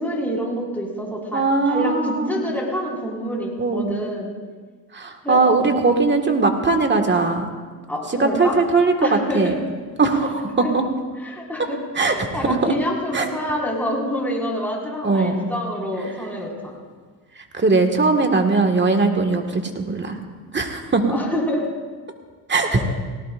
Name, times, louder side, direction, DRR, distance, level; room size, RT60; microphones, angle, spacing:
voice 1, 0.0-4.3 5.2-5.7 7.9-8.6 9.0-9.6 10.6-10.7 11.2-16.7 18.1-18.2 21.1-21.6 22.6-22.8, equal, 5° left, -4 dB, 5.1 m, -27 dB
voice 2, 1.3-2.5 3.6-4.0 4.9-7.4 8.1-9.5 10.0-10.8 12.0-12.7 13.1-13.3 15.0-15.5 17.4-20.2 20.5-21.2 22.5-22.8, right 3 dB, 25° right, 4 dB, 1.8 m, -20 dB
19.0 x 18.0 x 2.5 m, 1.5 s
supercardioid pair, 95°, 45 cm